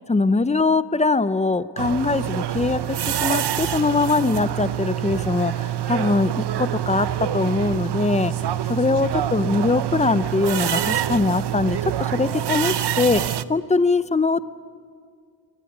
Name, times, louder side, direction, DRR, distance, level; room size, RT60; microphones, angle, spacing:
voice 1, 0.1-8.3 8.7-11.8 12.1-14.4, left 3 dB, 15° left, 14 dB, 0.5 m, -22 dB
sound 1, 1.8-13.4, right 11 dB, 85° right, 0.7 m, -26 dB
24.0 x 18.5 x 9.4 m, 2.1 s
wide cardioid pair, 170°, 40 cm